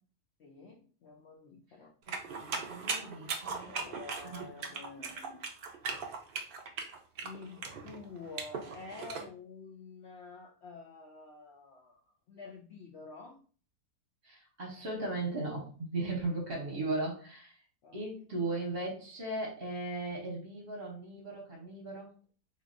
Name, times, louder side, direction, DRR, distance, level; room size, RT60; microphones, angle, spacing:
voice 1, 0.4-1.9 3.6-5.2 7.2-12.0 12.3-13.4 17.8-18.0, left 4 dB, 80° left, 2 dB, 0.6 m, -49 dB
sound 1, 2.1-9.2, right 5 dB, 80° right, 0.4 m, -39 dB
voice 2, 2.4-3.7 4.2-5.4 14.2-17.6 17.9-22.1, right 2 dB, 45° right, -1 dB, 0.9 m, -37 dB
4.0 x 2.8 x 2.5 m, 0.40 s
omnidirectional pair, 1.7 m